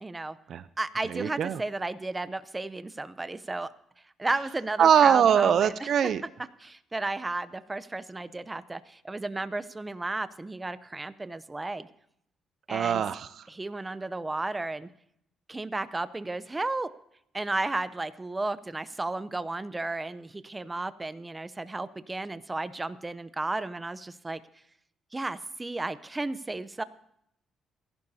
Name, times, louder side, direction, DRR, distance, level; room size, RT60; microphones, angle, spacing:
voice 1, 0.0-0.4 0.8-3.7 4.2-5.9 6.6-11.9 12.7-13.0 13.5-14.9 15.5-16.9 17.3-24.4 25.1-26.8, right 2 dB, 20° right, 14 dB, 0.6 m, -33 dB
voice 2, 1.1-1.6 4.8-6.2 12.7-13.3, right 8 dB, 65° right, 15 dB, 0.5 m, -22 dB
26.0 x 11.5 x 2.8 m, 0.72 s
cardioid pair, 90°, 0 cm